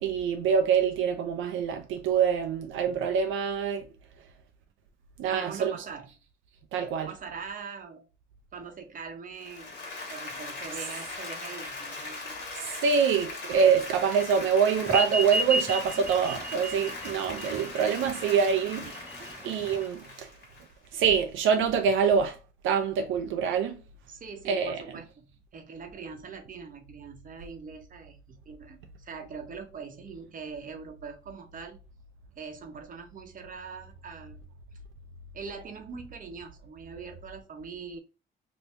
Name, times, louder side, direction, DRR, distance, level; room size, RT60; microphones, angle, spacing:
voice 1, 0.0-3.9 5.2-5.7 6.7-7.1 12.6-19.1 19.4-20.3 20.9-22.4 22.6-23.8 24.5-24.8, right 6 dB, 85° right, 0.4 m, -25 dB
voice 2, 5.2-6.1 7.0-8.1 8.5-9.8 10.1-12.4 24.1-31.8 32.4-34.4 35.3-38.0, right 5 dB, 45° right, 0.8 m, -42 dB
Applause, 9.4-21.1, left 3 dB, 60° left, 1.4 m, -40 dB
sound 1, 14.9-19.9, equal, 10° right, 0.3 m, -32 dB
2.7 x 2.6 x 3.2 m
cardioid pair, 90°, 20 cm